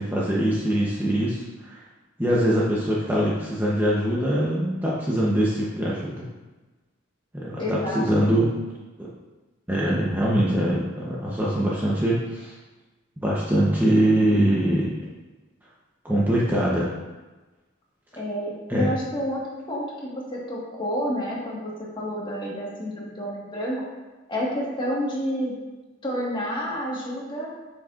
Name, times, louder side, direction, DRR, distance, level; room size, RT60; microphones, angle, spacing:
voice 1, 0.0-1.8 2.2-6.3 7.3-8.5 9.0-9.1 9.7-12.6 13.2-15.0 16.0-16.9 18.7-18.9, right 1 dB, 10° right, -6 dB, 0.8 m, -23 dB
voice 2, 7.6-8.4 18.1-23.9 24.3-25.5 26.0-27.5, equal, 25° left, -4 dB, 1.5 m, -29 dB
8.1 x 6.2 x 2.5 m, 1.2 s
head